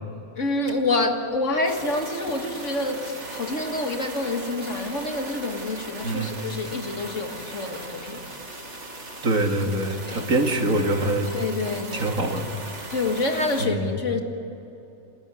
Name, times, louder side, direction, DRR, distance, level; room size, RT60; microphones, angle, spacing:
voice 1, 0.4-8.3 10.0-10.2 11.3-12.2 12.9-14.2, left 2 dB, 60° left, 2.1 m, -27 dB
sound 1, 1.6-13.7, right 2 dB, 55° right, 2.8 m, -38 dB
voice 2, 9.2-11.3 11.9-12.4 13.6-13.9, right 2 dB, 75° right, 2.5 m, -24 dB
28.5 x 13.5 x 9.7 m
omnidirectional pair, 1.4 m